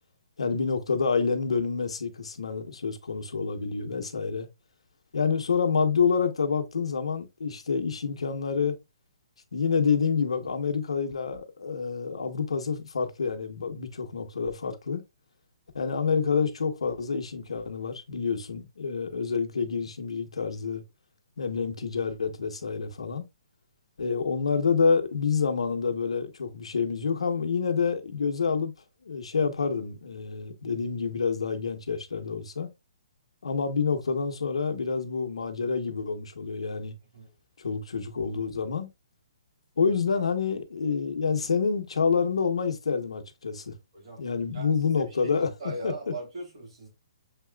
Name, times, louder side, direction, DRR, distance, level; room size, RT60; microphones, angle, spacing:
voice 1, 0.4-4.5 5.1-8.8 9.5-15.0 15.7-20.8 21.4-23.2 24.0-28.7 29.0-32.7 33.4-36.9 37.6-38.9 39.8-43.8 44.2-45.5 45.8-45.9, left 5 dB, 85° left, 1.0 m, -28 dB
voice 2, 43.9-44.2 44.5-46.9, right 2 dB, 60° right, 2.7 m, -39 dB
6.7 x 3.0 x 2.2 m
hypercardioid pair, 150°, 3 cm